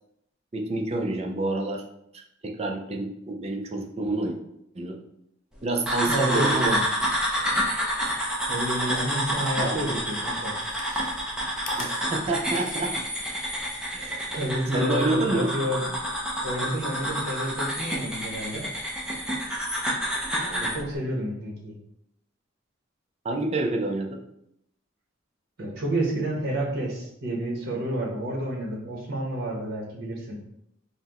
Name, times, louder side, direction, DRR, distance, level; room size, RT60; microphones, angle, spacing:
voice 1, 0.5-1.8 2.1-4.4 4.7-5.0 5.6-6.8 7.6-7.7 9.6-9.9 11.8-13.0 13.9-14.3 14.7-15.5 20.4-20.9 23.2-24.2, right 2 dB, 30° right, 2 dB, 0.5 m, -28 dB
sound 1, 5.9-20.8, equal, 5° right, 0.8 m, -29 dB
voice 2, 6.0-6.8 8.5-10.5 14.3-15.9 16.4-18.6 20.6-21.8 25.6-30.4, right 1 dB, 55° right, -2 dB, 1.0 m, -30 dB
Chewing mastication, 9.7-9.8 10.5-13.1 13.5-13.6, left 5 dB, 45° left, 0.5 m, -44 dB
5.7 x 2.2 x 3.0 m, 0.78 s
head